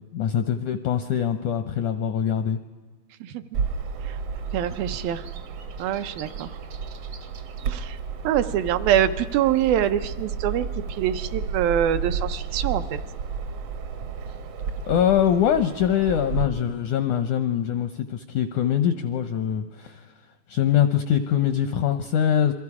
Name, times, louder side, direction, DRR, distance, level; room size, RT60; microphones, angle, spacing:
voice 1, 0.1-2.6 14.9-20.1 20.5-22.5, left 9 dB, 80° left, 9 dB, 1.7 m, -23 dB
Bird vocalization bird call bird song, 3.5-16.4, right 5 dB, 60° right, 1.6 m, -32 dB
voice 2, 4.5-5.2 5.8-6.5 7.7-8.0 8.2-13.0, right 10 dB, 75° right, 9 dB, 2.4 m, -24 dB
28.5 x 23.0 x 4.8 m, 1.4 s
omnidirectional pair, 4.4 m